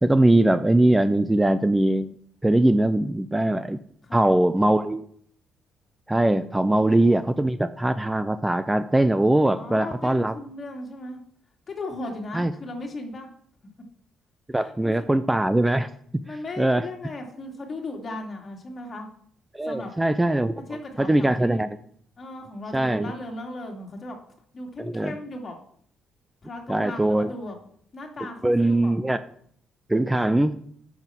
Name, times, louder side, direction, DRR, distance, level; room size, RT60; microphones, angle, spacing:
voice 1, 0.0-2.1 2.4-3.8 4.1-5.0 6.1-10.3 12.3-12.5 14.5-15.9 16.6-16.8 19.5-20.5 21.0-21.7 22.7-23.1 24.8-25.1 26.7-27.3 28.4-29.2 29.9-30.6, right 1 dB, 10° right, 12 dB, 0.5 m, -21 dB
voice 2, 4.0-4.3 9.6-11.2 11.7-13.3 14.5-15.2 16.3-19.1 19.6-19.9 20.7-21.7 22.2-24.2 24.5-25.6 26.4-27.6 27.9-28.9, left 2 dB, 40° left, 1 dB, 2.8 m, -37 dB
9.3 x 7.2 x 6.0 m, 0.64 s
cardioid pair, 90°, 0 cm